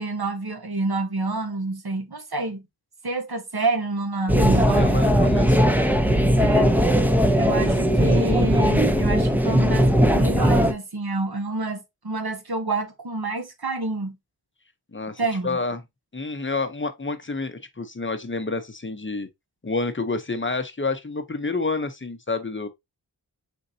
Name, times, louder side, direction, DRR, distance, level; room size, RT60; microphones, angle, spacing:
voice 1, 0.0-2.6 3.0-5.0 6.4-6.8 7.4-14.2 15.2-15.6, right 3 dB, 60° right, 1.2 m, -28 dB
sound 1, 4.3-10.7, equal, 5° right, 0.7 m, -19 dB
voice 2, 4.6-5.8 14.9-15.8 16.1-19.3 19.6-22.7, left 3 dB, 30° left, 0.8 m, -29 dB
4.4 x 3.9 x 2.7 m
wide cardioid pair, 45°, 42 cm